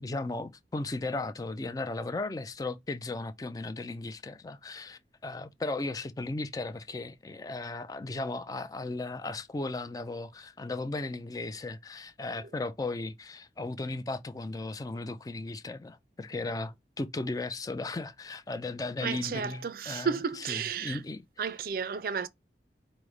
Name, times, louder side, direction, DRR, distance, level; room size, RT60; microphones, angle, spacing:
voice 1, 0.0-21.5, left 2 dB, 20° left, 0.3 m, -36 dB
voice 2, 19.0-21.0 21.4-22.3, right 6 dB, 55° right, 0.4 m, -32 dB
5.0 x 2.1 x 4.7 m
head